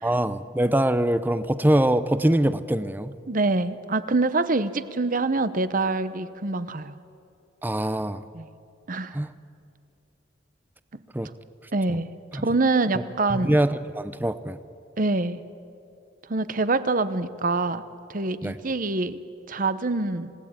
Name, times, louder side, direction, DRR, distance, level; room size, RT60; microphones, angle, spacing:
voice 1, 0.0-3.1 7.6-8.2 9.1-9.3 11.1-11.3 12.3-12.4 13.3-14.6 18.4-18.6, right 1 dB, 10° right, 13 dB, 0.6 m, -23 dB
voice 2, 3.3-6.9 8.3-8.5 8.9-9.2 10.9-11.0 11.7-12.1 12.3-13.5 15.0-15.4 16.3-17.8 18.1-19.2 19.5-20.3, right 3 dB, 45° right, 13 dB, 0.9 m, -25 dB
28.0 x 18.0 x 8.9 m, 2.6 s
head